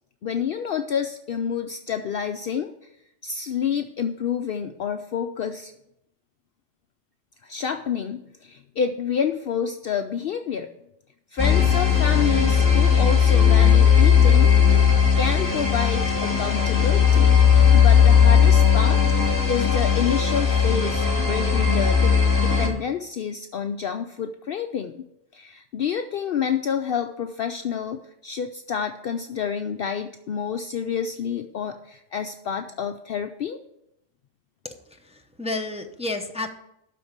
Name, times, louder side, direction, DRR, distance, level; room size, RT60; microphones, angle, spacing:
voice 1, 0.2-2.9 3.2-5.7 7.4-10.7 11.3-14.5 15.2-17.4 17.7-19.0 19.5-25.0 25.3-33.6, left 7 dB, 60° left, 7 dB, 0.7 m, -28 dB
sound 1, 11.4-22.7, left 7 dB, 15° left, 2.1 m, -17 dB
voice 2, 34.6-36.5, left 2 dB, 5° right, 4 dB, 0.6 m, -31 dB
12.5 x 4.3 x 8.0 m, 0.83 s
omnidirectional pair, 1.2 m